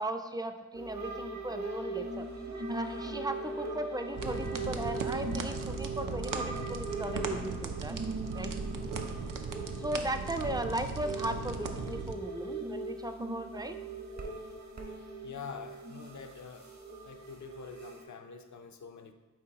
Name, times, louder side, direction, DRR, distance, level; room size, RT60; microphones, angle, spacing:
voice 1, 0.0-2.3 2.6-8.0 8.3-8.5 9.8-13.8, right 1 dB, 10° right, 7 dB, 0.4 m, -37 dB
sound 1, 0.7-18.0, right 2 dB, 55° right, 1.0 m, -40 dB
sound 2, 4.1-12.1, right 5 dB, 70° right, 0.6 m, -38 dB
voice 2, 15.2-16.7 17.0-19.1, left 6 dB, 60° left, 7 dB, 0.6 m, -46 dB
7.5 x 4.5 x 2.8 m, 1.2 s
wide cardioid pair, 55°, 33 cm